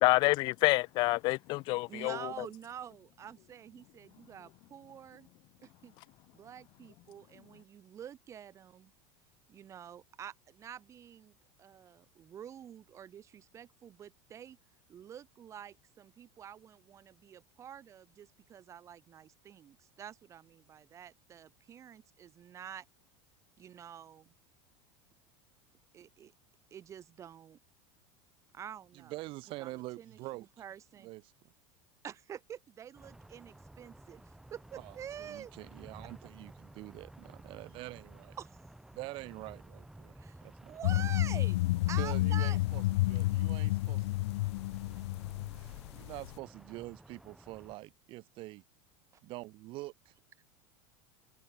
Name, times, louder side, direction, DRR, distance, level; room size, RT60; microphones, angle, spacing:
voice 1, 0.0-2.3, left 22 dB, 35° left, 0.4 m, -27 dB
voice 2, 1.9-5.3 5.6-5.9 6.3-8.9 9.5-11.3 11.6-14.6 14.9-22.9 23.6-24.3 25.9-26.3 26.7-27.6 28.5-29.1 29.6-31.1 32.0-35.5 38.4-38.5 40.2-40.4 40.7-41.6 41.9-42.6, right 9 dB, 20° right, 3.3 m, -48 dB
voice 3, 28.9-30.5 31.0-31.2 34.8-38.3 38.9-40.8 42.0-44.2 45.5-48.6 49.2-50.1, right 20 dB, 35° right, 4.5 m, -45 dB
sound 1, 32.9-47.8, right 1 dB, 5° right, 5.2 m, -54 dB
sound 2, 40.8-46.4, left 19 dB, 75° left, 0.8 m, -30 dB
supercardioid pair, 175°, 14 cm